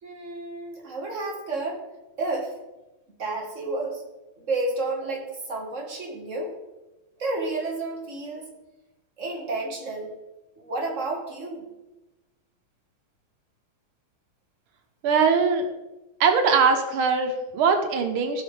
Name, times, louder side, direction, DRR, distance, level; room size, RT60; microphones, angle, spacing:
voice 1, 0.0-1.8 2.2-2.6 3.2-4.0 4.4-6.6 7.2-8.5 9.2-10.1 10.6-11.6, right 2 dB, 40° right, 0 dB, 1.9 m, -31 dB
voice 2, 15.0-15.7 16.2-18.4, right 5 dB, 85° right, 5 dB, 1.9 m, -21 dB
15.0 x 5.8 x 3.4 m, 1.0 s
omnidirectional pair, 2.3 m